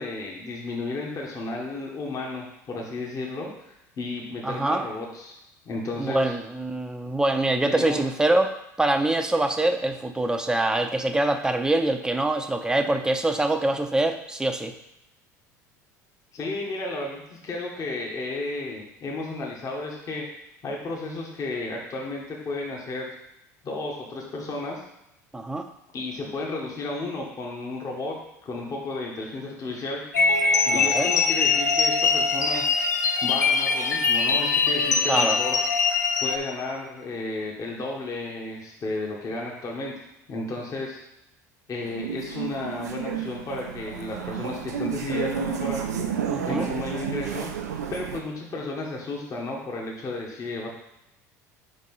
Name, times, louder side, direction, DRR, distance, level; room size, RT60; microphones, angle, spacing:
voice 1, 0.0-5.4 5.6-6.3 7.7-8.0 16.3-20.3 20.6-23.1 23.6-24.8 25.9-30.0 30.7-32.7 33.2-35.6 36.2-41.0 41.7-45.9 46.4-47.5 47.9-50.7, left 2 dB, 40° left, -2 dB, 1.5 m, -33 dB
voice 2, 4.4-4.9 6.0-8.5 8.8-14.7 25.3-25.7 30.7-31.1 35.1-35.4 46.3-46.7, right 2 dB, 10° right, 6 dB, 0.7 m, -24 dB
sound 1, 30.1-36.4, left 4 dB, 90° left, 0.5 m, -22 dB
sound 2, 41.8-48.2, right 7 dB, 80° right, 0.6 m, -31 dB
4.6 x 4.1 x 5.5 m, 0.85 s
hypercardioid pair, 70°, 9 cm